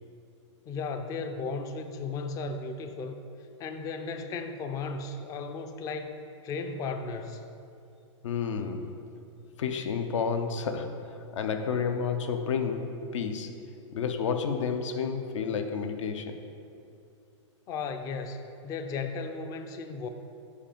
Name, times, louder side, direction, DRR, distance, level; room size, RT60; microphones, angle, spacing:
voice 1, 0.7-3.2 3.6-7.4 17.7-20.1, left 4 dB, 20° left, 7 dB, 0.4 m, -35 dB
voice 2, 8.2-9.0 9.6-13.5 13.9-16.4, left 6 dB, 75° left, 7 dB, 0.7 m, -31 dB
5.4 x 5.0 x 5.1 m, 2.6 s
hypercardioid pair, 135°, 16 cm